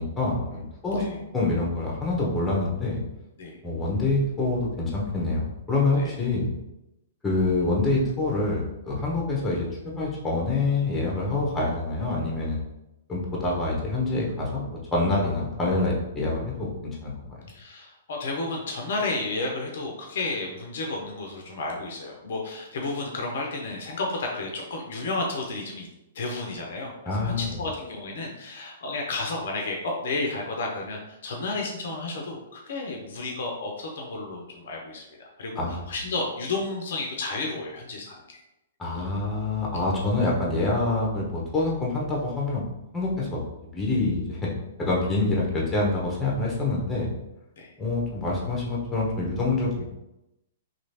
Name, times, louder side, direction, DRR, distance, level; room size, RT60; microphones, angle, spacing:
voice 1, 0.0-3.0 3.6-6.5 7.2-12.6 13.1-17.4 27.0-27.6 35.6-35.8 38.8-42.6 42.9-44.5 44.8-47.1 47.8-49.9, left 2 dB, 10° left, -3 dB, 1.0 m, -26 dB
voice 2, 17.5-25.9 26.1-35.5 35.9-38.4 47.6-47.7, left 3 dB, 65° left, 0 dB, 0.6 m, -32 dB
3.1 x 2.8 x 2.7 m, 0.91 s
figure-of-eight pair, 115°, 0 cm